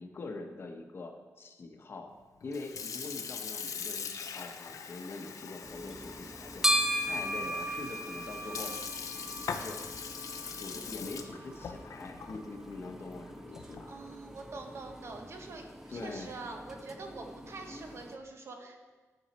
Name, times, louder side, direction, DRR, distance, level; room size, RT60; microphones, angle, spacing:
voice 1, 0.0-2.1 2.4-6.6 7.1-8.8 9.3-9.8 10.5-13.9 15.9-16.3, left 3 dB, 45° left, 4 dB, 1.0 m, -43 dB
Sink (filling or washing) / Fill (with liquid), 2.4-14.0, left 6 dB, 80° left, 0.6 m, -42 dB
sound 1, 5.6-18.2, equal, 5° right, 0.4 m, -38 dB
voice 2, 13.6-18.9, right 3 dB, 55° right, 3 dB, 1.1 m, -45 dB
10.0 x 6.4 x 4.2 m, 1.3 s
wide cardioid pair, 165°, 6 cm